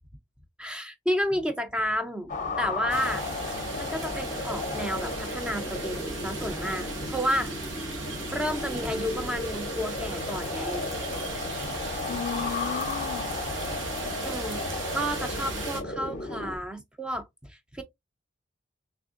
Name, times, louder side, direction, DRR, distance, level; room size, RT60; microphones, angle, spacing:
voice 1, 0.6-3.2 3.5-7.8 8.3-10.9 14.2-17.8, equal, 5° right, 0.5 m, -31 dB
sound 1, 2.3-16.6, left 3 dB, 40° left, 0.7 m, -34 dB
sound 2, 2.9-15.8, right 2 dB, 90° right, 1.3 m, -37 dB
sound 3, 8.3-8.5 9.5-9.7 11.1-11.3 12.4-12.6 13.7-13.8, right 1 dB, 45° right, 0.9 m, -47 dB
voice 2, 12.1-13.3 15.3-16.5, left 6 dB, 80° left, 0.3 m, -37 dB
3.5 x 3.4 x 2.4 m
head